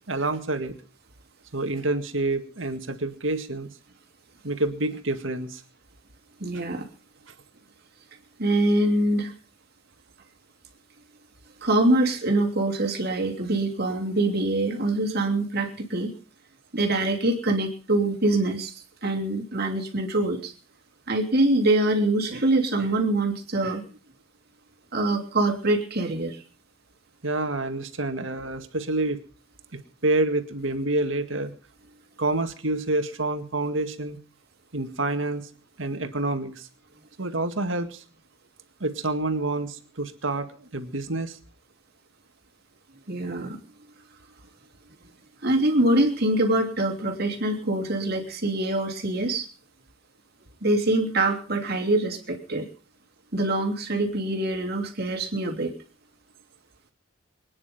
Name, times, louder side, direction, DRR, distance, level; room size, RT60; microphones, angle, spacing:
voice 1, 0.1-0.8 1.5-3.7 4.4-5.6 27.2-29.2 29.7-31.5 32.2-34.2 34.7-35.5 35.8-36.7 37.2-38.0 38.8-41.4, right 2 dB, 75° right, 8 dB, 2.0 m, -28 dB
voice 2, 6.4-6.9 8.4-9.3 11.6-16.1 16.7-18.7 19.0-20.5 21.1-23.8 24.9-26.4 43.1-43.6 45.4-49.5 50.6-52.7 53.3-55.7, right 2 dB, 50° right, 2 dB, 3.1 m, -24 dB
24.5 x 10.0 x 5.3 m, 0.40 s
head